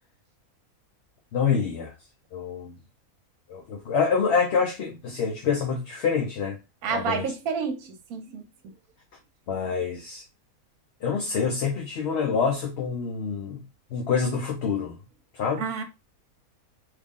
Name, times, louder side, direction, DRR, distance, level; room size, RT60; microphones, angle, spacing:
voice 1, 1.3-1.9 2.3-2.7 3.5-6.6 6.9-7.3 9.5-10.2 11.0-13.6 13.9-15.0 15.3-15.6, left 6 dB, 60° left, 0.8 m, -26 dB
voice 2, 6.8-8.7 15.6-15.8, right 6 dB, 85° right, 1.1 m, -30 dB
3.2 x 2.4 x 3.6 m
omnidirectional pair, 1.5 m